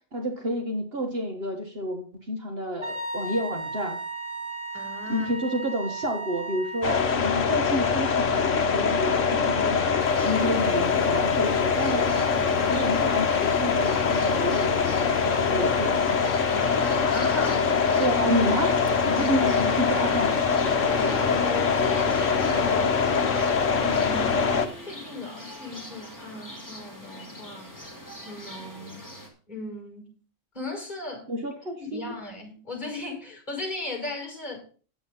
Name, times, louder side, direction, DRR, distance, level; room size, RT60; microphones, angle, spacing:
voice 1, 0.1-4.0 5.1-9.9 10.2-12.1 12.7-16.2 18.0-18.8 19.1-20.4 31.3-32.1, equal, 45° right, 3 dB, 1.8 m, -29 dB
Wind instrument woodwind instrument, 2.8-7.1, right 2 dB, 20° right, 2.2 m, -35 dB
voice 2, 4.7-5.3 10.3-10.5 16.5-18.2 19.1-19.3 21.1-24.4 24.8-27.7 28.2-29.0 29.5-30.2 30.5-31.3 31.8-34.6, left 2 dB, 35° left, 0 dB, 5.7 m, -37 dB
sound 1, 6.8-24.7, left 5 dB, 65° left, 1.5 m, -23 dB
sound 2, 10.0-29.3, equal, 15° left, 2.7 m, -42 dB
10.0 x 8.2 x 5.5 m, 0.39 s
omnidirectional pair, 1.4 m